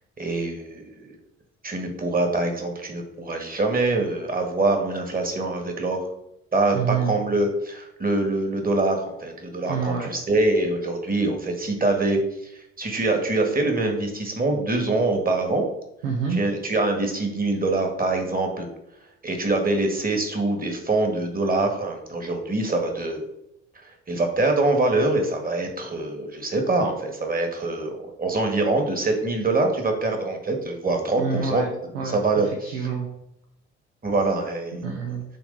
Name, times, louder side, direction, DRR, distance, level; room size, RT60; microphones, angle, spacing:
voice 1, 0.2-1.1 1.6-6.1 6.5-15.7 16.4-18.7 19.2-23.3 23.9-31.6 32.0-32.8 34.0-34.8, right 2 dB, 25° right, 3 dB, 1.8 m, -24 dB
voice 2, 6.7-7.1 9.6-10.1 16.0-16.4 31.2-31.7 31.9-33.1 34.8-35.2, right 6 dB, 80° right, 1 dB, 0.9 m, -27 dB
9.3 x 3.5 x 4.0 m, 0.81 s
figure-of-eight pair, 45°, 34 cm